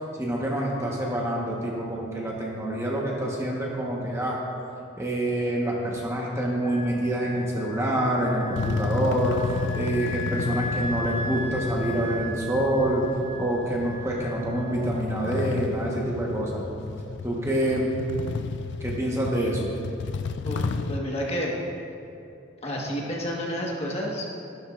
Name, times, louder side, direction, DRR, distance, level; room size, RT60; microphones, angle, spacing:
voice 1, 0.2-4.4 5.0-13.0 13.4-16.6 17.2-17.9 18.8-19.7, right 1 dB, 15° right, -3 dB, 1.2 m, -26 dB
Wind instrument woodwind instrument, 6.6-14.9, left 1 dB, 60° right, 2.3 m, -38 dB
sound 1, 8.5-21.0, left 4 dB, 60° left, 0.4 m, -32 dB
voice 2, 20.4-21.7 22.6-24.3, equal, 30° left, -3 dB, 1.4 m, -30 dB
13.5 x 12.0 x 2.5 m, 2.7 s
head